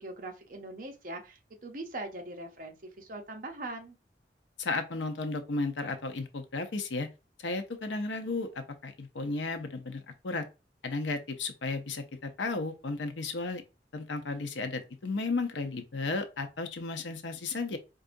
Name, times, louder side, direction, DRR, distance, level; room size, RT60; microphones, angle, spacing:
voice 1, 0.0-4.0, right 2 dB, 45° right, 0.7 m, -41 dB
voice 2, 4.6-7.1 7.4-10.5 10.8-13.6 13.9-17.8, left 3 dB, 80° left, 0.7 m, -34 dB
4.6 x 2.5 x 2.5 m
head